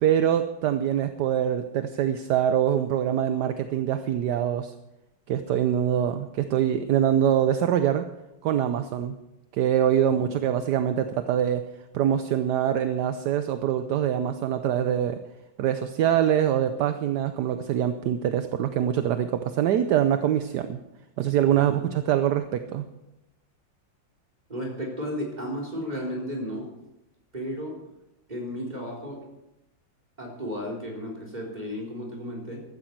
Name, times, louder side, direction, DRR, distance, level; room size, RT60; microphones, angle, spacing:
voice 1, 0.0-4.7 5.3-8.1 8.4-9.1 9.5-11.6 11.9-15.2 15.6-20.8 21.2-22.9, right 10 dB, 70° right, 9 dB, 1.2 m, -24 dB
voice 2, 21.5-21.8 24.5-26.7 27.3-27.8 28.3-29.2 30.2-32.6, equal, 20° right, -2 dB, 3.9 m, -34 dB
15.5 x 13.0 x 4.6 m, 0.93 s
omnidirectional pair, 2.1 m